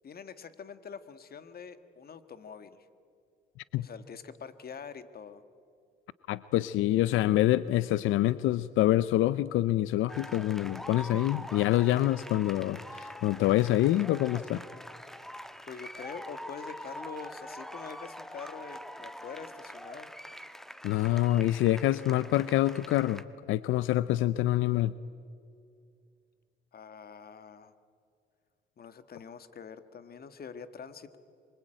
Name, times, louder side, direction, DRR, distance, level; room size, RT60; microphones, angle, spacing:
voice 1, 0.0-2.8 3.8-5.4 14.3-14.4 14.7-14.8 15.7-20.1 26.7-27.7 28.8-31.2, left 6 dB, 50° left, 11 dB, 1.7 m, -45 dB
voice 2, 6.3-14.6 20.8-23.2 23.5-24.9, left 14 dB, 90° left, 16 dB, 0.6 m, -26 dB
sound 1, 10.1-23.2, equal, ahead, 1.3 m, -44 dB
25.5 x 23.5 x 9.0 m, 2.4 s
cardioid pair, 90°, 20 cm